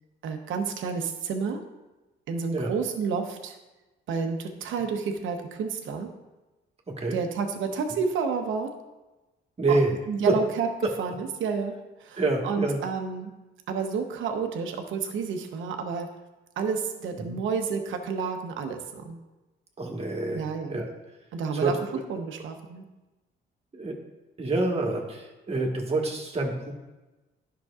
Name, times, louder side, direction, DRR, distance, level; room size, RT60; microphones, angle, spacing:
voice 1, 0.2-1.6 2.3-3.6 4.1-6.1 7.1-8.7 9.7-9.8 10.1-10.7 11.0-11.7 12.0-13.3 13.7-16.1 16.6-19.2 20.3-20.8 21.3-21.8 22.1-22.9, right 5 dB, 80° right, 5 dB, 0.9 m, -30 dB
voice 2, 6.9-7.2 9.6-9.9 10.3-10.4 10.8-10.9 12.2-12.8 17.2-17.4 19.8-20.9 21.5-21.7 23.7-24.0 24.4-26.7, right 2 dB, 30° right, 1 dB, 1.4 m, -27 dB
10.5 x 6.0 x 2.4 m, 1.1 s
cardioid pair, 90°, 20 cm